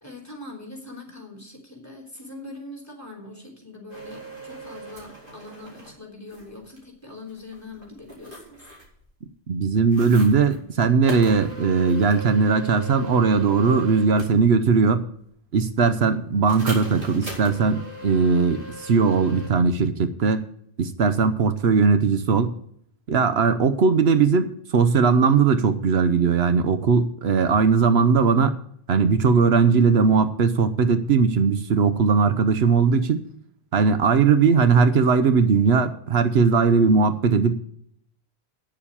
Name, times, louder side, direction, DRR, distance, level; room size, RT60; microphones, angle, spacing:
voice 1, 0.0-8.7, left 2 dB, 15° left, 1 dB, 3.5 m, -42 dB
sound 1, 3.9-5.9 6.3-6.8 7.3-9.0 9.9-10.6 11.0-14.4 16.5-19.5, right 1 dB, 55° right, 4.1 m, -39 dB
voice 2, 9.5-15.1 15.5-20.4 20.8-22.5 23.1-28.5 28.9-33.2 33.7-37.6, right 5 dB, 75° right, 10 dB, 1.0 m, -19 dB
9.5 x 7.2 x 8.4 m, 0.66 s
omnidirectional pair, 1.1 m